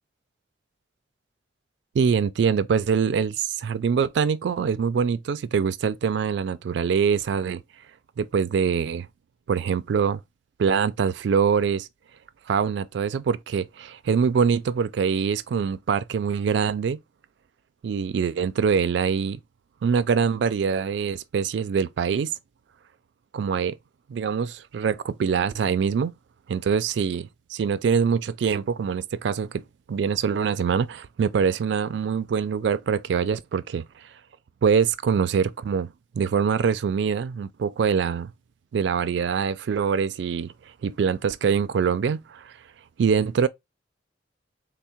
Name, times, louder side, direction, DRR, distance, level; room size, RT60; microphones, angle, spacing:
voice 1, 1.9-7.6 8.2-9.1 9.5-10.2 10.6-11.9 12.5-17.0 17.8-19.4 19.8-22.3 23.3-23.8 24.1-26.1 26.5-34.1 34.6-38.3 38.7-40.5 40.8-42.5 43.0-43.5, right 6 dB, 70° right, 0.3 m, -24 dB
3.5 x 2.0 x 4.2 m
head